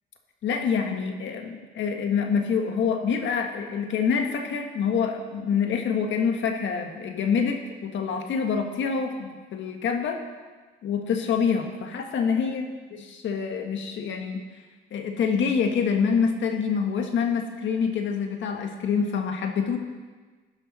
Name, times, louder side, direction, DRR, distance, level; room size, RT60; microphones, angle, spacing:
voice 1, 0.4-10.2 10.8-12.6 13.1-14.4 14.9-19.8, left 6 dB, 70° left, 4 dB, 1.7 m, -26 dB
16.0 x 11.0 x 4.3 m, 1.4 s
cardioid pair, 90°, 20 cm